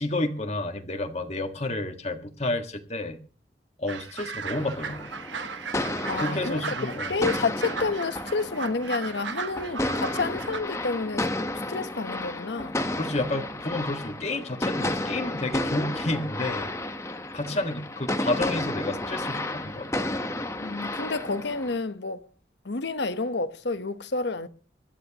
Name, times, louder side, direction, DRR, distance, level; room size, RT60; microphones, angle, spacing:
voice 1, 0.0-3.2 3.8-5.1 6.2-7.2 12.9-16.7 17.3-19.9, left 2 dB, 35° left, 1.7 m, -30 dB
sound 1, 3.9-10.6, right 5 dB, 90° right, 1.1 m, -36 dB
sound 2, 4.5-21.8, left 1 dB, 15° left, 1.1 m, -32 dB
voice 2, 6.1-6.7 7.1-11.3 11.7-12.8 20.6-22.2 22.6-24.5, left 3 dB, 70° left, 1.1 m, -29 dB
25.5 x 11.0 x 3.0 m
head